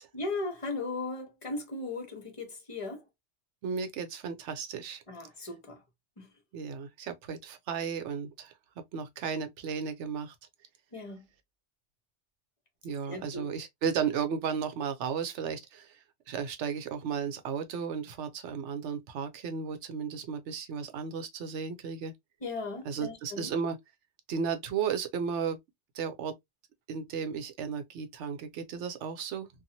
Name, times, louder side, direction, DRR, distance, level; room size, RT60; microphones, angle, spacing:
voice 1, 0.1-3.0 5.1-5.8 6.2-6.3 10.9-11.3 13.1-13.5 22.4-23.5, left 3 dB, 30° left, 0.9 m, -37 dB
voice 2, 3.6-5.0 6.5-10.3 12.8-22.1 22.8-23.8 24.3-25.6 25.9-26.4 26.9-29.5, right 6 dB, 85° right, 0.9 m, -34 dB
2.7 x 2.5 x 2.7 m
omnidirectional pair, 1.2 m